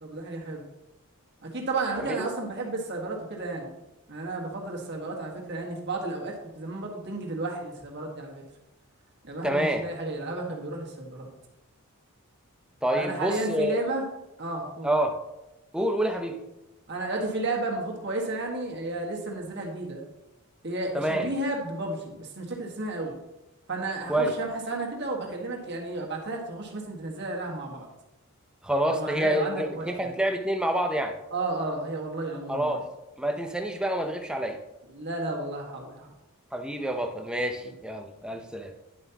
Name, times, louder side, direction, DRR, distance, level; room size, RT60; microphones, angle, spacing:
voice 1, 0.0-0.6 1.4-3.7 4.1-8.4 9.2-11.3 12.9-14.0 14.4-14.9 16.9-20.0 20.6-23.1 23.7-27.9 28.9-30.1 31.3-32.8 34.9-36.1, right 2 dB, 50° right, 0 dB, 1.7 m, -32 dB
voice 2, 9.4-9.8 12.8-13.8 14.8-15.1 15.7-16.4 20.9-21.3 24.1-24.3 28.6-31.2 32.5-32.8 33.2-34.6 36.5-38.7, right 1 dB, 5° right, 4 dB, 0.7 m, -27 dB
10.5 x 7.5 x 3.0 m, 0.98 s
head